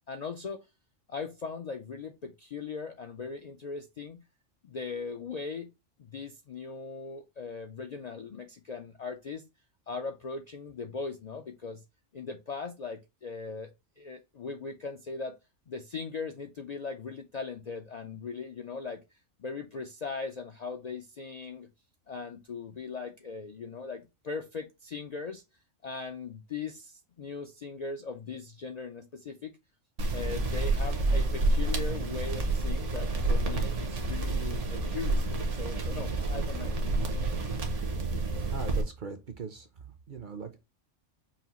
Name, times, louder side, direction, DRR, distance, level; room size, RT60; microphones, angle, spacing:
voice 1, 0.1-0.7 1.1-4.2 4.6-5.7 6.0-9.4 9.9-11.8 12.1-13.7 14.0-15.3 15.7-19.0 19.4-21.7 22.1-25.4 25.8-29.5 30.1-36.8, left 4 dB, 70° left, 0.4 m, -39 dB
sound 1, 30.0-38.8, right 2 dB, 70° right, 1.2 m, -29 dB
voice 2, 38.5-39.7 40.1-40.6, right 5 dB, 55° right, 0.6 m, -39 dB
5.7 x 2.4 x 2.8 m
omnidirectional pair, 1.3 m